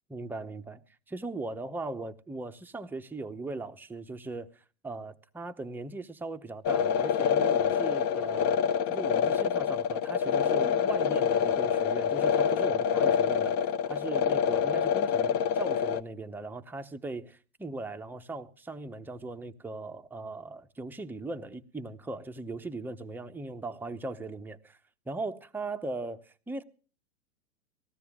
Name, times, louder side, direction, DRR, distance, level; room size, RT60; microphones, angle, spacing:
voice 1, 0.1-0.8 1.1-8.6 8.9-24.8 25.1-26.6, right 3 dB, 5° right, 0.8 m, -39 dB
sound 1, 6.6-16.0, left 7 dB, 35° left, 1.1 m, -26 dB
19.0 x 15.0 x 3.6 m
hypercardioid pair, 130°, 43 cm